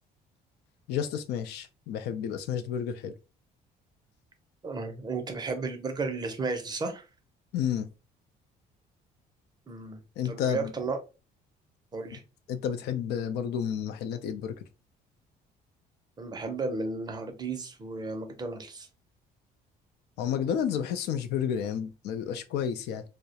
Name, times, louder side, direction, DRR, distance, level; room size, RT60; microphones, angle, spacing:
voice 1, 0.9-3.1 7.5-7.9 10.2-10.7 12.5-14.5 20.2-23.0, left 8 dB, 75° left, 0.4 m, -31 dB
voice 2, 4.6-7.1 9.7-11.0 11.9-12.2 16.2-18.9, right 3 dB, 25° right, 0.5 m, -34 dB
2.3 x 2.0 x 2.7 m
cardioid pair, 110°, 17 cm